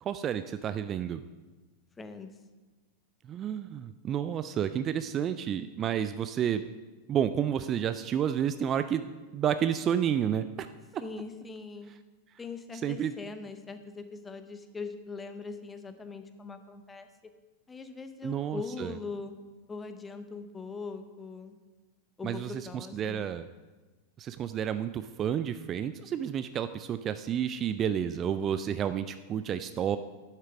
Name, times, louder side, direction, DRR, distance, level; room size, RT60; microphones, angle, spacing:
voice 1, 0.0-1.2 3.2-6.6 7.1-10.7 10.9-11.0 12.8-13.1 18.2-18.9 22.2-23.5 24.2-30.0, right 9 dB, 30° right, 11 dB, 0.3 m, -30 dB
voice 2, 2.0-2.3 11.0-11.9 12.4-17.1 17.7-19.3 19.7-21.6 22.2-23.3, left 4 dB, 15° left, 9 dB, 0.8 m, -41 dB
9.5 x 7.3 x 5.0 m, 1.2 s
figure-of-eight pair, 90°, 0 cm